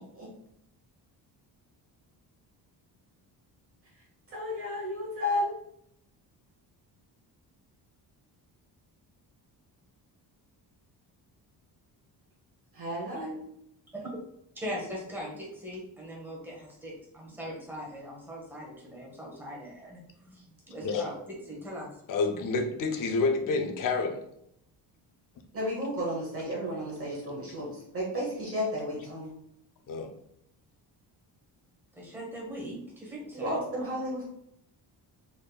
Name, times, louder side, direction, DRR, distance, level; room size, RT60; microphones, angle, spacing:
voice 1, 4.3-5.5 12.7-13.4 25.5-29.3 33.3-34.2, equal, 35° right, 0.9 m, -32 dB
voice 2, 14.5-21.9 32.0-33.6, equal, 5° right, 1.0 m, -40 dB
voice 3, 22.1-24.2 29.9-30.1, left 4 dB, 50° left, 0.6 m, -28 dB
4.1 x 3.5 x 2.3 m
cardioid pair, 175°, 41 cm